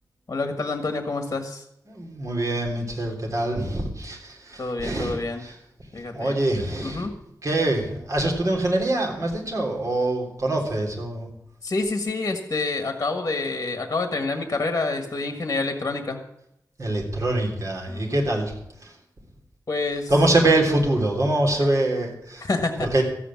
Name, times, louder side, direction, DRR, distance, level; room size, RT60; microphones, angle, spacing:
voice 1, 0.3-1.6 4.6-5.4 5.9-6.4 6.8-7.1 11.6-16.2 17.9-18.2 19.7-20.1 22.4-22.9, left 3 dB, 45° left, 6 dB, 1.7 m, -27 dB
voice 2, 1.9-5.5 6.1-7.1 7.4-11.3 16.8-18.5 18.8-18.9 20.1-22.5 22.8-23.0, right 1 dB, 50° right, -1 dB, 3.5 m, -24 dB
14.0 x 8.4 x 7.3 m, 0.78 s
wide cardioid pair, 100°, 7 cm